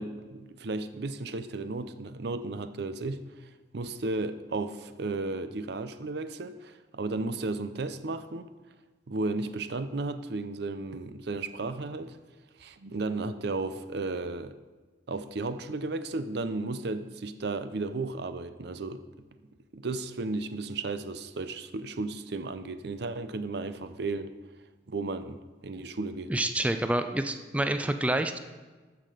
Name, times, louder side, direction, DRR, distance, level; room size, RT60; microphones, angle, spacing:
voice 1, 0.0-3.2 3.7-8.5 9.1-12.2 12.6-14.5 15.1-19.0 19.7-24.3 24.9-25.4 25.6-26.4, right 3 dB, 65° right, 0.6 m, -34 dB
voice 2, 26.3-28.4, right 1 dB, 10° right, 0.4 m, -28 dB
14.0 x 6.0 x 5.0 m
head